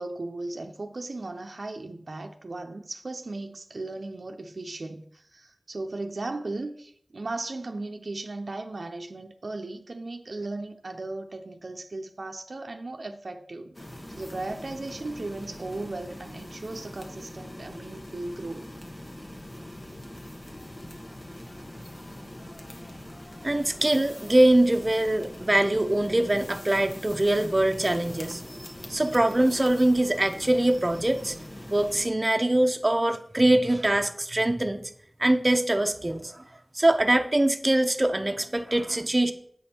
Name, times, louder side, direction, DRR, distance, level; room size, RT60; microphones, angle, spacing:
voice 1, 0.0-13.8 14.1-18.7, right 2 dB, 75° right, 0.5 m, -36 dB
sound 1, 13.7-32.1, left 1 dB, 40° left, 1.1 m, -42 dB
voice 2, 23.4-31.4 31.7-34.8 35.2-36.4 36.7-39.3, right 1 dB, 35° right, 0.6 m, -23 dB
7.7 x 5.2 x 4.3 m
wide cardioid pair, 50°, 0 cm